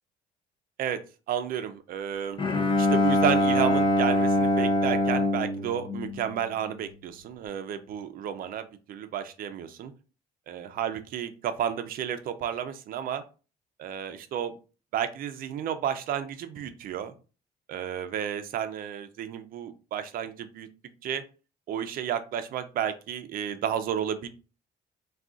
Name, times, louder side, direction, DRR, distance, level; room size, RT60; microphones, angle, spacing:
voice 1, 0.8-2.4 2.8-9.9 10.5-13.2 13.8-14.5 14.9-17.1 17.7-20.7 21.0-21.2 21.7-24.3, right 9 dB, 60° right, 9 dB, 0.5 m, -32 dB
Bowed string instrument, 2.4-6.7, left 1 dB, 30° left, 0.6 m, -24 dB
2.3 x 2.3 x 3.7 m, 0.34 s
cardioid pair, 110°, 17 cm